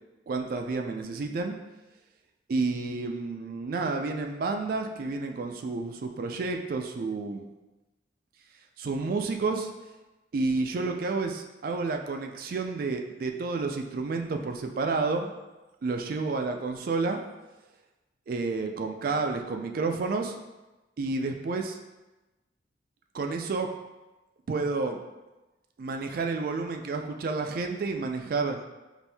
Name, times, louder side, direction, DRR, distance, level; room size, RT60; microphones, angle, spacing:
voice 1, 0.3-1.5 2.5-7.4 8.8-9.7 10.3-15.3 15.8-17.2 18.3-20.3 21.0-21.8 23.1-23.7 24.5-25.0 25.8-28.6, right 3 dB, 50° right, 4 dB, 0.3 m, -30 dB
4.2 x 2.6 x 3.4 m, 1.1 s
head